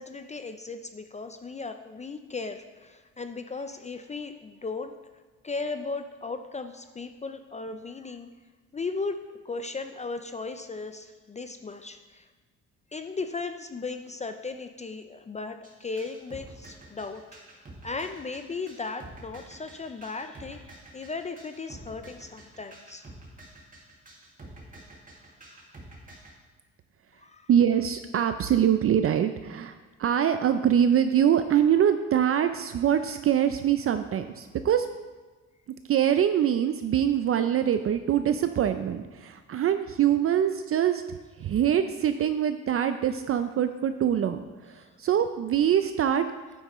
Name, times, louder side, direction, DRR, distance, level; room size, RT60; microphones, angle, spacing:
voice 1, 0.0-5.0 5.4-8.3 8.7-12.3 12.9-17.2 17.5-23.1 25.5-25.7 27.2-27.5 44.8-44.9, left 4 dB, 25° left, 8 dB, 0.4 m, -36 dB
sound 1, 15.6-26.3, right 2 dB, 25° right, 2.0 m, -48 dB
voice 2, 27.5-34.9 35.9-41.0 41.4-44.4 44.7-46.3, right 9 dB, 50° right, 9 dB, 0.5 m, -24 dB
9.3 x 8.1 x 3.1 m, 1.3 s
cardioid pair, 90°, 30 cm